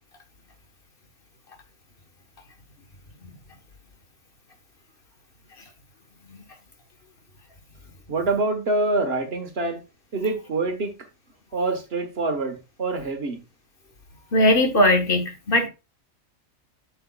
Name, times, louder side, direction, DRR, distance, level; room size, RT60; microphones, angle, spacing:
voice 1, 8.1-9.8 10.1-10.9 11.5-13.4, right 3 dB, 50° right, 1.5 m, -25 dB
voice 2, 14.3-15.7, left 1 dB, 45° left, 1.4 m, -19 dB
7.8 x 6.9 x 2.3 m
omnidirectional pair, 1.4 m